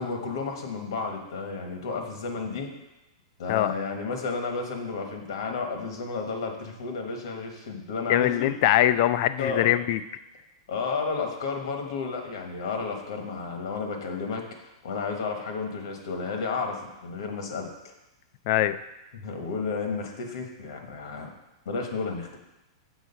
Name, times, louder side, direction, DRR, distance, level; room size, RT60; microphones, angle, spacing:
voice 1, 0.0-2.7 3.4-8.5 9.4-9.7 10.7-17.9 19.1-21.3 21.6-22.4, left 4 dB, 75° left, 3 dB, 1.3 m, -32 dB
voice 2, 8.1-10.0 18.5-18.8, left 13 dB, 40° left, 13 dB, 0.3 m, -22 dB
6.3 x 4.6 x 5.6 m, 0.96 s
supercardioid pair, 160°, 3 cm